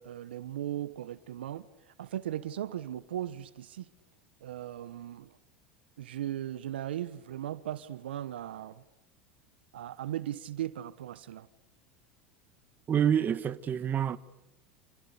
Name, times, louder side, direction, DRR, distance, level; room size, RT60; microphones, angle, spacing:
voice 1, 0.0-3.9 4.4-5.4 6.0-8.8 9.7-11.5, right 12 dB, 80° right, 1.2 m, -37 dB
voice 2, 12.9-14.2, right 9 dB, 35° right, 1.6 m, -27 dB
29.5 x 28.0 x 6.9 m
hypercardioid pair, 85°, 6 cm